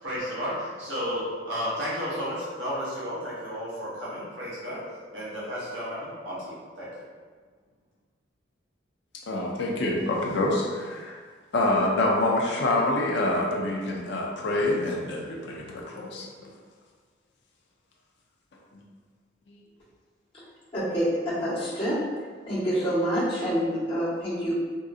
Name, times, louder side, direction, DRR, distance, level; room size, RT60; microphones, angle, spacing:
voice 1, 0.0-4.8 5.1-6.9, equal, 80° right, -9 dB, 0.9 m, -33 dB
voice 2, 9.3-11.2 11.5-16.5 19.5-19.6, left 2 dB, 70° left, -2 dB, 0.4 m, -26 dB
voice 3, 20.7-22.0 22.5-24.6, equal, 30° left, -11 dB, 1.1 m, -27 dB
3.7 x 2.6 x 2.4 m, 1.5 s
head